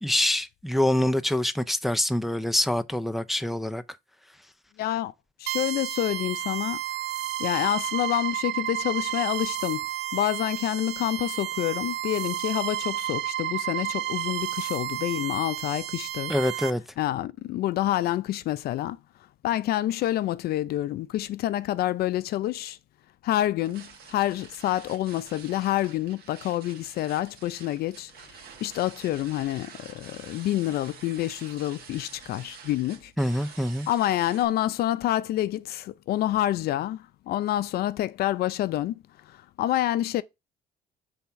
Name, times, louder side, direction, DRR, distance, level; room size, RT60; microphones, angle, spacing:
voice 1, 0.0-3.8 16.3-16.8 33.2-33.9, left 1 dB, ahead, 0.5 m, -25 dB
voice 2, 4.8-5.1 5.4-6.8 7.4-9.9 10.1-16.3 17.0-19.0 19.4-22.8 23.2-28.3 28.6-33.1 33.9-40.2, left 13 dB, 65° left, 0.5 m, -28 dB
sound 1, 5.5-16.7, right 13 dB, 80° right, 0.5 m, -31 dB
sound 2, 23.6-34.4, right 6 dB, 65° right, 1.7 m, -48 dB
5.5 x 3.5 x 5.6 m
cardioid pair, 110°, 17 cm